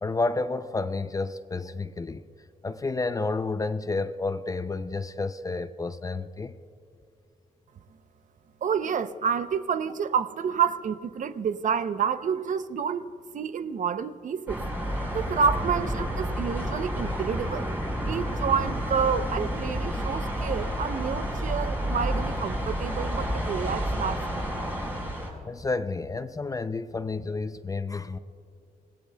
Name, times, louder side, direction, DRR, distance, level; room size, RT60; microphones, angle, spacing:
voice 1, 0.0-2.2 2.6-6.5 25.4-28.2, left 3 dB, 20° left, 12 dB, 0.4 m, -30 dB
voice 2, 8.6-13.0 13.3-14.6 15.1-17.7 18.1-24.5, right 6 dB, 55° right, 12 dB, 0.6 m, -29 dB
sound 1, 14.5-25.3, equal, 15° right, 4.6 m, -30 dB
27.0 x 19.5 x 2.2 m, 2.6 s
wide cardioid pair, 130°, 15 cm